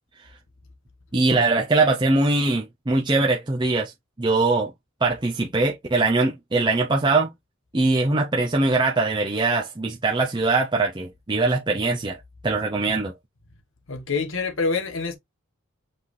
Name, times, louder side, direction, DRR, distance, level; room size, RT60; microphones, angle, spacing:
voice 1, 1.1-3.9 4.2-4.7 5.0-7.3 7.7-12.2 12.4-13.1, right 3 dB, 20° right, 0.6 m, -22 dB
voice 2, 13.9-15.2, left 4 dB, 65° left, 1.3 m, -26 dB
5.7 x 3.3 x 2.7 m
head